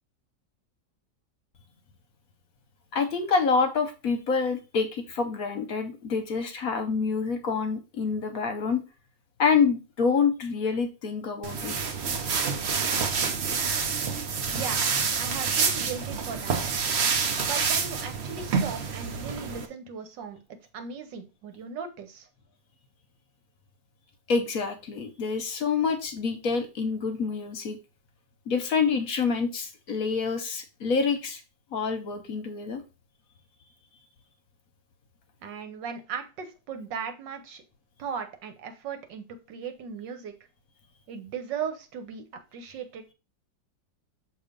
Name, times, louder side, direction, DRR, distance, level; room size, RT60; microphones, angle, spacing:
voice 1, 2.9-8.8 9.4-11.7 24.3-27.8 28.5-31.4 31.7-32.8, left 5 dB, 60° left, 6 dB, 1.1 m, -27 dB
sound 1, 11.4-19.7, right 5 dB, 55° right, 0.7 m, -28 dB
voice 2, 14.5-14.8 15.2-16.6 17.5-20.4 20.7-22.3 35.4-37.6 38.0-40.3 41.1-42.2 42.5-43.1, right 6 dB, 80° right, 7 dB, 1.6 m, -37 dB
6.6 x 2.9 x 5.1 m, 0.30 s
omnidirectional pair, 1.9 m